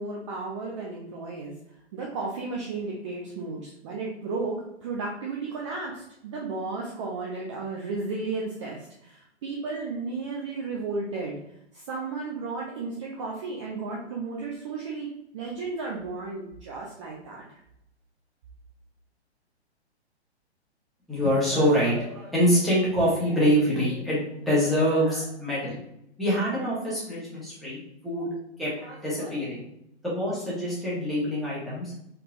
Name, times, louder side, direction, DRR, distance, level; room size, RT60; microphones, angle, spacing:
voice 1, 0.0-1.5 1.9-11.4 11.7-15.1 15.3-17.4, right 3 dB, 30° right, -2 dB, 0.5 m, -33 dB
voice 2, 21.1-25.8 26.2-28.3 28.6-29.6 30.0-31.9, equal, ahead, -9 dB, 1.4 m, -25 dB
4.1 x 3.4 x 2.4 m, 0.79 s
figure-of-eight pair, 120°, 34 cm